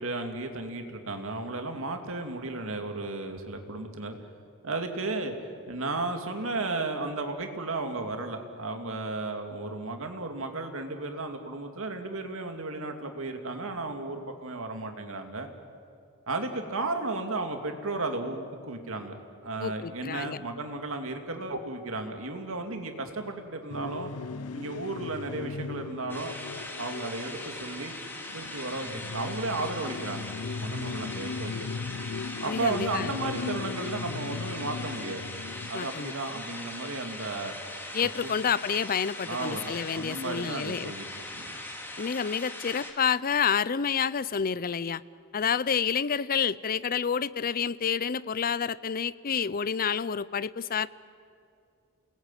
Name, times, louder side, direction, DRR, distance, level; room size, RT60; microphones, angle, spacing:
voice 1, 0.0-4.2 4.6-5.3 5.7-15.5 16.3-24.1 24.5-26.3 26.8-27.9 28.3-30.3 30.6-31.5 32.4-35.2 35.7-37.5 38.2-38.3 39.3-41.1 41.3-41.6, right 2 dB, 65° right, 5 dB, 2.5 m, -34 dB
voice 2, 19.6-20.4 32.5-33.1 35.7-36.1 37.9-40.9 42.0-45.0 45.3-50.9, left 7 dB, 40° left, 18 dB, 0.5 m, -29 dB
sound 1, 23.7-35.7, left 4 dB, 85° left, 0.6 m, -38 dB
sound 2, 26.1-42.9, left 1 dB, 10° left, 2.8 m, -40 dB
28.5 x 19.5 x 9.1 m, 2.4 s
head